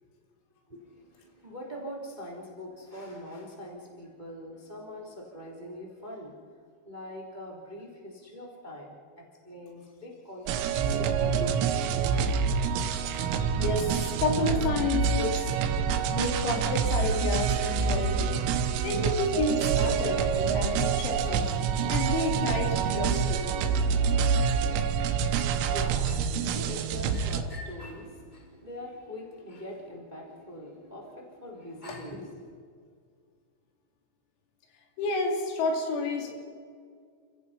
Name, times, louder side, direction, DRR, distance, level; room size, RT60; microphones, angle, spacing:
voice 1, 0.7-11.7 25.0-32.5, equal, 10° right, -1 dB, 2.4 m, -43 dB
sound 1, 10.5-27.4, right 6 dB, 85° right, 3.7 m, -27 dB
voice 2, 13.1-15.5 16.1-18.4 18.8-21.5 21.9-23.5 35.0-36.3, left 3 dB, 90° left, 3 dB, 5.5 m, -30 dB
29.0 x 15.5 x 5.8 m, 2.1 s
omnidirectional pair, 5.9 m